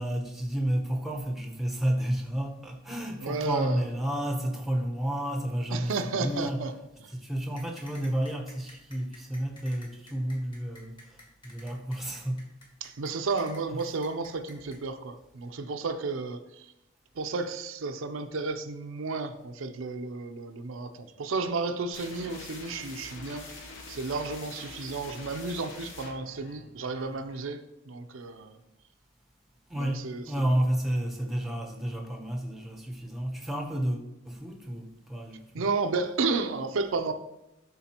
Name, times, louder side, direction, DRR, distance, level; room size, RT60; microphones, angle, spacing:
voice 1, 0.0-6.7 7.2-10.9 11.4-12.4 13.7-13.8 29.7-35.6, right 1 dB, ahead, 0.7 m, -31 dB
voice 2, 3.2-3.8 5.7-6.7 7.0-7.1 12.8-16.7 17.2-23.5 23.9-28.6 29.7-30.6 35.5-37.1, right 3 dB, 70° right, 0.5 m, -32 dB
sound 1, 7.6-14.8, left 1 dB, 20° left, 1.3 m, -51 dB
sound 2, 21.9-27.6, left 3 dB, 65° left, 1.0 m, -45 dB
11.5 x 3.8 x 2.9 m
head